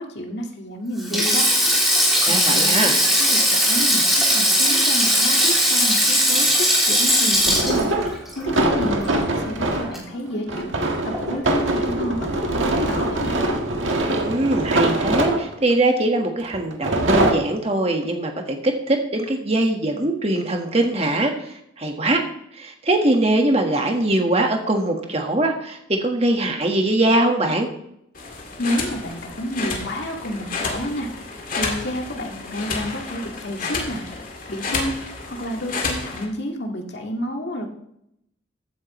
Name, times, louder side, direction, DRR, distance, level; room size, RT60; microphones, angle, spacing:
voice 1, 0.0-1.5 2.0-4.0 4.3-10.7 11.2-12.2 12.5-13.3 28.6-31.1 31.5-34.0 34.5-34.9 35.3-37.7, equal, 60° left, 2 dB, 2.0 m, -30 dB
Sink (filling or washing), 1.0-9.5 9.7-10.0 11.1-11.4, equal, ahead, 3.0 m, -19 dB
voice 2, 2.2-3.0 14.2-21.3 21.8-22.2 22.6-27.7, right 1 dB, 30° right, 3 dB, 1.6 m, -21 dB
sound 1, 4.7-4.8 7.3-10.0 10.5-15.7 16.5-17.3, right 1 dB, 75° right, 1.6 m, -23 dB
sound 2, 28.2-36.3, left 3 dB, 45° left, 2.2 m, -30 dB
15.0 x 9.5 x 3.2 m, 0.76 s
head